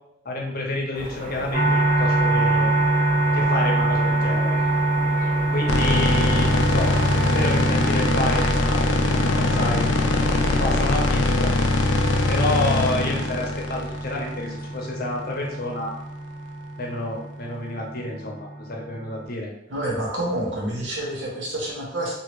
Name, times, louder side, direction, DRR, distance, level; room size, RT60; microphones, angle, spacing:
voice 1, 0.2-2.7 3.3-4.6 5.5-7.0 7.2-8.9 9.1-9.9 10.5-11.5 12.3-15.9 16.8-19.5, left 2 dB, 50° left, -1 dB, 0.7 m, -29 dB
sound 1, 0.9-7.7, right 1 dB, 45° right, 0.6 m, -37 dB
sound 2, 1.5-19.2, right 2 dB, 30° right, 1.4 m, -25 dB
sound 3, 5.7-14.9, left 2 dB, 85° left, 0.4 m, -22 dB
voice 2, 19.7-22.1, right 1 dB, 75° right, -4 dB, 1.1 m, -28 dB
2.8 x 2.7 x 3.0 m, 0.82 s
head